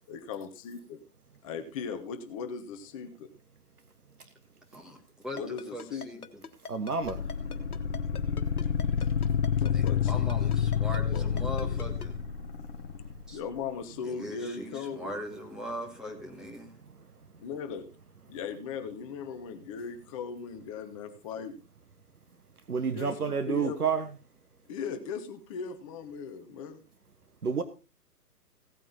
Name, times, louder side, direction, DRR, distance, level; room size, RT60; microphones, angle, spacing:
voice 1, 0.1-1.0 1.4-3.3 5.4-6.1 9.0-9.1 9.5-11.7 13.3-15.1 17.4-17.8 18.3-21.6 22.9-23.8 24.7-26.8, left 6 dB, 20° left, 1.1 m, -38 dB
voice 2, 4.7-6.4 9.7-12.1 13.3-13.4 14.0-16.7, equal, ahead, 1.6 m, -40 dB
Ringtone, 5.4-12.1, left 5 dB, 65° left, 1.6 m, -42 dB
voice 3, 6.7-7.2 22.7-24.1 27.4-27.6, right 5 dB, 70° right, 1.4 m, -29 dB
sound 1, 7.0-13.2, left 8 dB, 35° left, 0.9 m, -29 dB
16.5 x 8.9 x 4.0 m
figure-of-eight pair, 130°, 47 cm